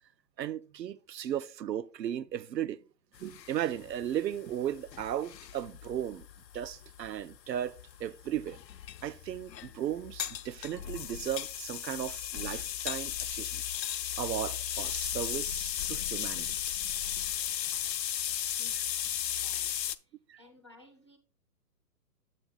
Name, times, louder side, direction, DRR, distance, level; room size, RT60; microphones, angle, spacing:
voice 1, 0.4-2.8 3.2-6.2 6.5-7.7 8.0-8.6 9.0-13.6 14.2-16.5 20.3-20.4, right 11 dB, 85° right, 0.6 m, -36 dB
sound 1, 3.2-20.0, left 10 dB, 80° left, 0.7 m, -36 dB
voice 2, 18.6-18.9 19.3-21.2, left 2 dB, 20° left, 0.4 m, -58 dB
7.6 x 5.1 x 3.8 m
hypercardioid pair, 145°, 49 cm